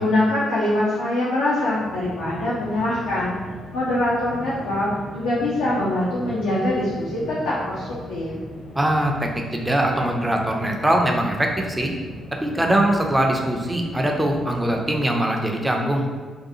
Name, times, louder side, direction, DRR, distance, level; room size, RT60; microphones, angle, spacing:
voice 1, 0.0-3.3 3.7-8.3, left 1 dB, 75° left, -9 dB, 0.5 m, -23 dB
sound 1, 1.5-15.4, equal, 45° left, 0.8 m, -38 dB
voice 2, 8.8-11.9 12.4-16.1, right 1 dB, 15° right, 1 dB, 0.5 m, -22 dB
2.6 x 2.3 x 2.6 m, 1.5 s
figure-of-eight pair, 40°, 0 cm